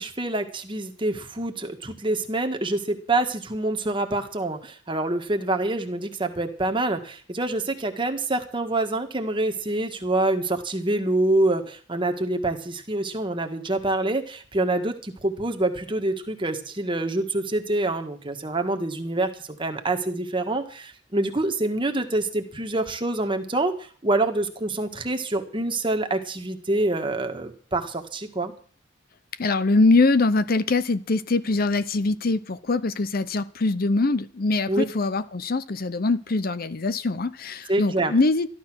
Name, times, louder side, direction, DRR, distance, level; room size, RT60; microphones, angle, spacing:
voice 1, 0.0-28.5 34.7-34.8 37.7-38.1, right 2 dB, 25° right, 6 dB, 1.6 m, -26 dB
voice 2, 29.4-38.5, left 3 dB, 50° left, 14 dB, 0.7 m, -23 dB
13.5 x 12.0 x 6.2 m, 0.43 s
head